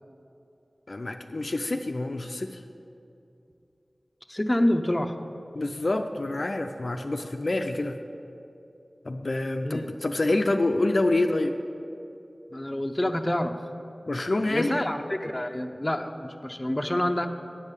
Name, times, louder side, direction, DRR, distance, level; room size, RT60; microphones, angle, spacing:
voice 1, 0.9-2.6 5.5-8.0 9.0-11.5 14.1-14.8, left 2 dB, 60° left, 5 dB, 0.4 m, -27 dB
voice 2, 4.3-5.1 9.6-9.9 12.5-13.6 14.5-17.3, left 1 dB, 20° left, 5 dB, 0.7 m, -27 dB
9.8 x 5.4 x 8.2 m, 2.7 s
wide cardioid pair, 50°, 0 cm